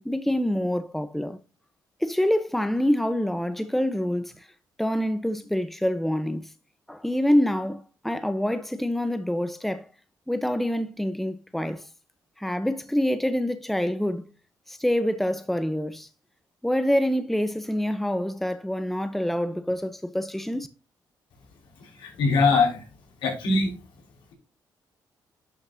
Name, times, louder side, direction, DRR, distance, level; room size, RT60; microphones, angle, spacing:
voice 1, 0.0-1.4 2.0-4.5 4.8-6.5 6.9-9.9 10.3-11.9 12.4-14.2 14.7-16.1 16.6-20.7, equal, ahead, 0.9 m, -26 dB
voice 2, 21.8-22.8 23.2-23.7, left 3 dB, 80° left, 4.7 m, -22 dB
11.0 x 6.4 x 2.8 m
cardioid pair, 75°, 8 cm